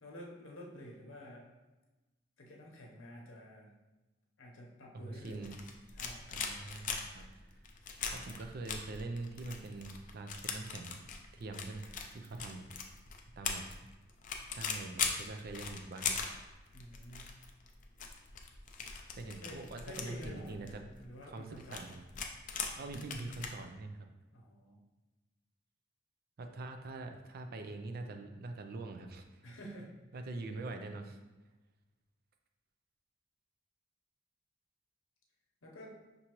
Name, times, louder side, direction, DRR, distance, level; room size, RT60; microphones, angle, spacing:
voice 1, 0.0-1.5 2.4-3.7 4.4-5.5 5.9-6.4 16.7-17.3 19.4-21.9 24.3-24.8 29.4-29.9 35.6-36.0, equal, 85° left, -1 dB, 0.9 m, -50 dB
voice 2, 4.9-5.6 6.3-7.3 8.1-11.0 11.3-12.7 13.4-13.6 14.5-16.2 19.1-20.8 21.3-22.0 22.8-24.1 26.4-29.4 30.1-31.2, right 2 dB, 50° right, 6 dB, 0.4 m, -44 dB
sound 1, 5.2-23.5, left 6 dB, 40° left, 0.4 m, -40 dB
5.6 x 2.6 x 3.0 m, 1.1 s
head